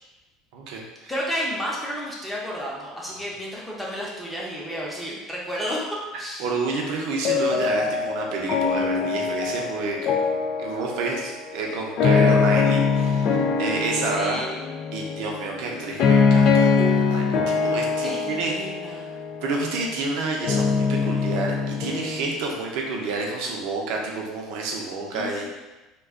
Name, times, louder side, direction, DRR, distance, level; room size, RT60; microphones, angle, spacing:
voice 1, 0.5-1.1 3.1-3.2 6.1-10.1 10.6-14.4 14.9-19.0 19.4-25.5, right 3 dB, 70° right, 0 dB, 0.6 m, -29 dB
voice 2, 1.1-5.8 6.2-6.5 14.0-14.7 18.0-19.1 25.1-25.5, equal, 5° left, -5 dB, 0.7 m, -32 dB
sound 1, 7.2-22.2, left 5 dB, 50° left, 0.3 m, -23 dB
2.3 x 2.2 x 3.5 m, 1.1 s
supercardioid pair, 120°, 0 cm